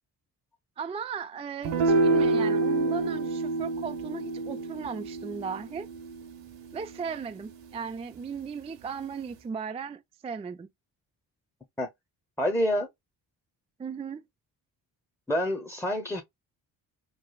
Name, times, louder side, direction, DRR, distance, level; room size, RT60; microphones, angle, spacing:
voice 1, 0.8-5.9 6.7-10.7 13.8-14.2, right 6 dB, 15° right, 0.3 m, -36 dB
sound 1, 1.6-8.2, right 3 dB, 75° right, 1.1 m, -28 dB
voice 2, 12.4-12.9 15.3-16.2, equal, 5° left, 0.8 m, -27 dB
3.2 x 2.3 x 2.3 m
supercardioid pair, 60°, 44 cm